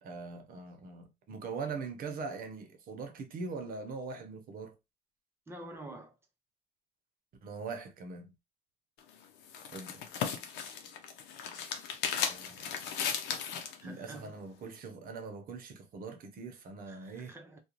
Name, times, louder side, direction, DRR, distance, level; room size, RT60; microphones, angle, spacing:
voice 1, 0.0-4.7 7.4-8.3 9.7-10.1 12.3-12.8 13.8-17.3, right 4 dB, 60° right, 0.8 m, -42 dB
voice 2, 5.5-6.2 13.8-14.3 16.9-17.6, right 1 dB, 15° right, 0.7 m, -47 dB
sound 1, 9.0-13.8, left 7 dB, 85° left, 0.6 m, -36 dB
2.5 x 2.2 x 3.0 m
cardioid pair, 110°, 17 cm